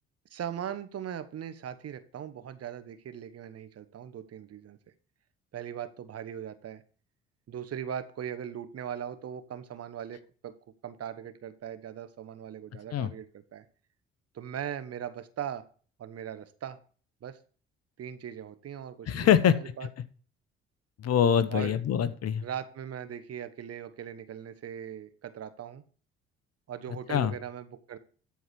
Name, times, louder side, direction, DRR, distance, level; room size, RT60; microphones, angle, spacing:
voice 1, 0.3-4.8 5.5-6.8 7.5-10.5 10.8-13.6 14.3-15.6 16.0-16.8 17.2-17.4 18.0-19.9 21.5-21.8 22.4-25.8 26.7-28.0, right 9 dB, 50° right, 11 dB, 1.2 m, -39 dB
voice 2, 19.1-19.5 21.0-22.4 27.1-27.3, left 9 dB, 50° left, 14 dB, 0.9 m, -24 dB
13.0 x 4.7 x 6.0 m, 0.42 s
hypercardioid pair, 50°, 32 cm